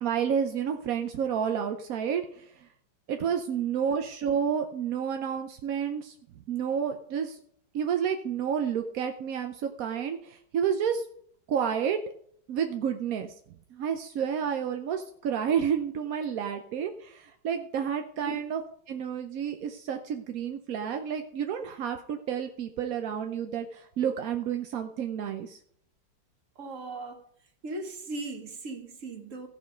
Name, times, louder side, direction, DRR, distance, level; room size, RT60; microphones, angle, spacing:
voice 1, 0.0-2.7 3.1-6.1 6.5-7.4 7.7-11.0 11.5-12.0 12.5-13.3 13.7-18.6 18.9-25.6, right 8 dB, 65° right, 0.9 m, -30 dB
voice 2, 26.5-27.2 27.6-29.5, right 2 dB, 45° right, 1.6 m, -38 dB
15.0 x 6.2 x 5.1 m
omnidirectional pair, 2.1 m